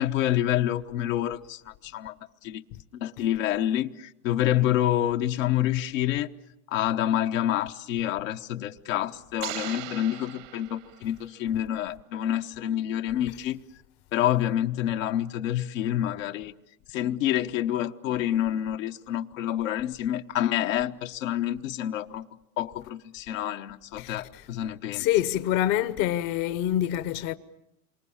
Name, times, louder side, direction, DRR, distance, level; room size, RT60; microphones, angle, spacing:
voice 1, 0.0-2.2 2.4-2.6 2.9-6.3 6.7-13.6 14.1-16.5 16.9-22.3 22.6-25.1, left 12 dB, 80° left, 1.2 m, -27 dB
sound 1, 9.4-11.3, right 15 dB, 75° right, 1.5 m, -39 dB
voice 2, 24.0-24.5 24.9-27.3, left 12 dB, 55° left, 1.0 m, -26 dB
27.5 x 25.0 x 7.2 m
supercardioid pair, 120°, 39 cm